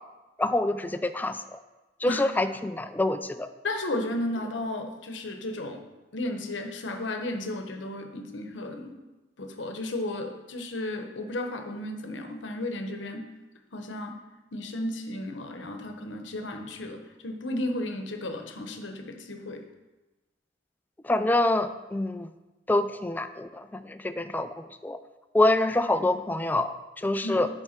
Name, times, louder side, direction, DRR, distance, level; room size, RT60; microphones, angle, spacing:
voice 1, 0.4-1.6 2.0-3.5 21.0-22.3 22.7-25.0 25.3-26.7 27.0-27.5, left 2 dB, 10° left, 9 dB, 0.3 m, -26 dB
voice 2, 3.6-5.8 6.1-8.9 9.4-13.3 13.7-14.2 14.5-19.6 27.2-27.4, left 1 dB, 80° left, 5 dB, 0.9 m, -34 dB
7.8 x 4.5 x 5.7 m, 1.1 s
head